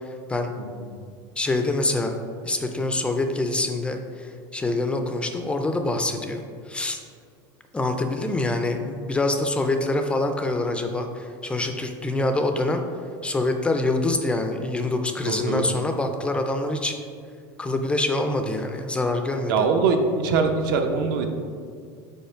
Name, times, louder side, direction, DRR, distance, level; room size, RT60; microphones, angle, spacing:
voice 1, 1.4-2.2 2.4-6.4 6.7-7.0 7.7-12.8 13.2-16.9 17.6-19.7, left 2 dB, 10° left, 6 dB, 0.3 m, -25 dB
voice 2, 15.3-15.7 19.5-21.3, right 4 dB, 75° right, 5 dB, 0.7 m, -22 dB
5.5 x 4.2 x 4.4 m, 2.2 s
supercardioid pair, 150°, 11 cm